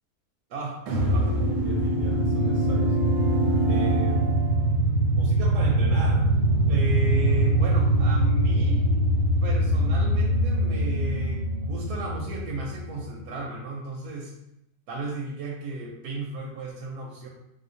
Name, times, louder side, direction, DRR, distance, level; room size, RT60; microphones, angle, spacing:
voice 1, 0.5-2.9 3.7-4.2 5.1-6.3 6.7-9.0 9.4-14.4 14.9-17.3, right 2 dB, 85° right, -2 dB, 1.2 m, -35 dB
sound 1, 0.9-13.1, right 1 dB, 65° right, 0.9 m, -23 dB
3.6 x 2.8 x 2.6 m, 0.82 s
omnidirectional pair, 1.7 m